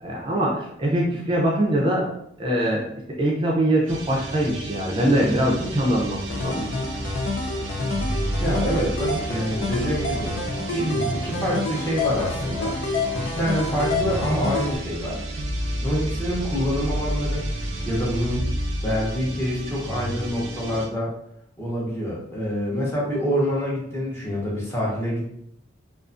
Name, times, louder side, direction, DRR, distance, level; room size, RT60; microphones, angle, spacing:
voice 1, 0.0-2.1 2.4-2.8 3.1-6.7, right 1 dB, 25° right, -3 dB, 0.4 m, -23 dB
sound 1, 3.9-20.9, right 1 dB, 80° right, 0.5 m, -31 dB
sound 2, 6.3-14.8, left 3 dB, 80° left, 0.4 m, -28 dB
voice 2, 8.4-10.3 10.7-12.7 13.1-15.2 15.8-17.4 17.9-18.5 18.8-21.1 21.6-25.3, equal, 15° left, -6 dB, 0.7 m, -26 dB
2.4 x 2.3 x 2.4 m, 0.74 s
head